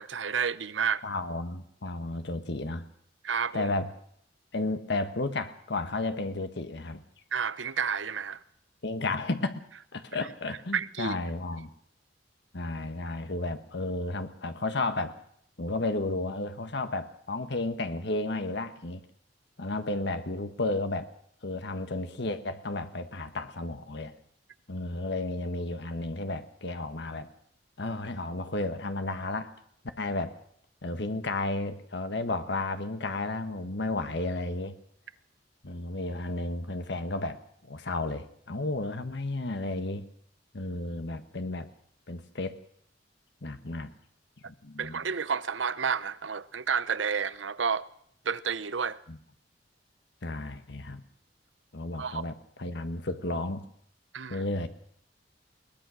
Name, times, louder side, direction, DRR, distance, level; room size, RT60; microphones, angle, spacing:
voice 1, 0.0-1.0 3.2-3.7 7.3-8.4 10.2-10.3 10.7-11.2 44.8-47.8 48.2-49.0 52.0-52.2 54.1-54.4, right 6 dB, 85° right, 0.9 m, -30 dB
voice 2, 1.0-2.8 3.5-3.9 4.5-7.0 8.8-9.6 9.9-11.7 12.5-15.1 15.6-19.0 19.6-21.1 21.4-24.1 24.7-27.3 27.8-29.5 30.0-30.3 30.8-34.7 35.6-37.4 37.7-40.0 40.5-41.7 42.1-42.6 43.4-43.9 44.4-45.0 49.1-49.2 50.2-51.0 51.7-53.6 54.3-54.7, left 2 dB, 65° left, 1.4 m, -33 dB
21.5 x 20.0 x 6.4 m
head